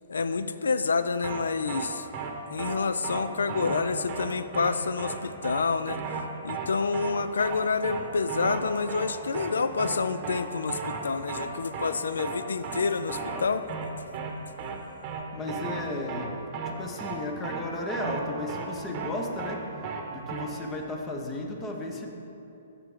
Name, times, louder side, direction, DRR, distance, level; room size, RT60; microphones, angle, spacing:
voice 1, 0.1-2.1 2.5-6.0 6.4-13.6, left 4 dB, 80° left, 12 dB, 0.3 m, -28 dB
sound 1, 1.2-1.4 1.7-1.9 2.1-2.3 2.6-2.8 3.0-3.2 3.5-3.8 4.1-4.3 4.5-4.7 5.0-5.2 5.4-5.6 5.9-6.2 6.5-6.7 6.9-7.1 7.4-7.6 7.8-8.0 8.3-8.6 8.9-9.1 9.3-9.5 9.8-10.0 10.2-10.4 10.7-11.0 11.3-11.5 11.7-11.9 12.2-12.4 12.6-12.8 13.1-13.4 13.7-13.9 14.1-14.3 14.6-14.8 15.0-15.2 15.5-15.8 16.1-16.3 16.5-16.7 17.0-17.2 17.4-17.6 17.9-18.2 18.5-18.7 18.9-19.1 19.4-19.6 19.8-20.0 20.3-20.4, right 6 dB, 35° right, 0.8 m, -34 dB
voice 2, 15.3-16.4 16.6-19.6 20.1-22.1, left 2 dB, 20° left, 2 dB, 0.7 m, -34 dB
7.5 x 6.6 x 3.6 m, 2.8 s
hypercardioid pair, 135°, 0 cm